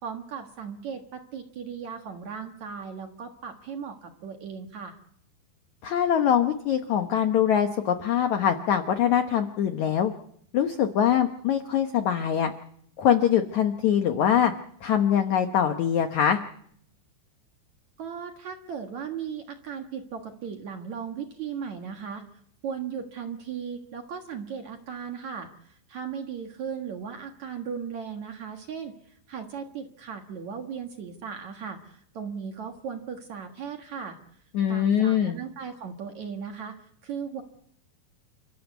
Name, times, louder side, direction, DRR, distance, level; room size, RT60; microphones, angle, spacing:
voice 1, 0.0-5.0 18.0-22.2 22.6-28.9 29.3-34.2 34.7-36.7 37.0-37.4, right 7 dB, 55° right, 4 dB, 2.2 m, -37 dB
voice 2, 5.8-10.1 10.5-12.5 13.0-14.5 14.8-16.4 34.5-35.4, left 9 dB, 85° left, 7 dB, 1.6 m, -23 dB
29.0 x 14.5 x 8.2 m, 0.68 s
omnidirectional pair, 5.1 m